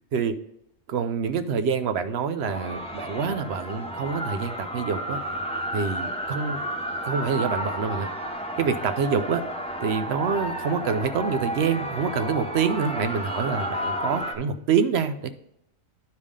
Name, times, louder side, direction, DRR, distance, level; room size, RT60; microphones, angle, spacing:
voice 1, 0.9-5.2 5.7-6.7 7.0-8.1 8.6-9.4 9.8-15.3, right 6 dB, 60° right, 10 dB, 0.8 m, -26 dB
sound 1, 2.4-14.3, equal, 10° left, 0.4 m, -32 dB
10.5 x 3.6 x 4.9 m, 0.79 s
omnidirectional pair, 1.4 m